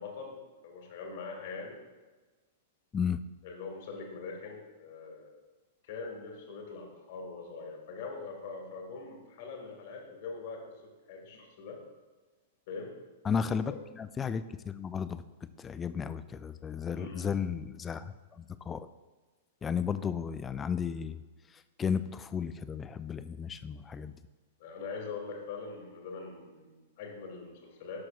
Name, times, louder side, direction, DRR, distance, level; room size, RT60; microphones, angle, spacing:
voice 1, 0.0-1.8 3.4-5.4 5.8-10.8 11.1-11.8 12.7-13.0 13.7-13.8 16.9-17.3 24.6-28.0, left 4 dB, 55° left, 1 dB, 1.8 m, -42 dB
voice 2, 13.2-15.2 15.6-18.9 19.6-21.2 21.8-24.1, left 6 dB, 20° left, 13 dB, 0.4 m, -34 dB
11.0 x 6.1 x 2.4 m, 1.3 s
figure-of-eight pair, 105°, 0 cm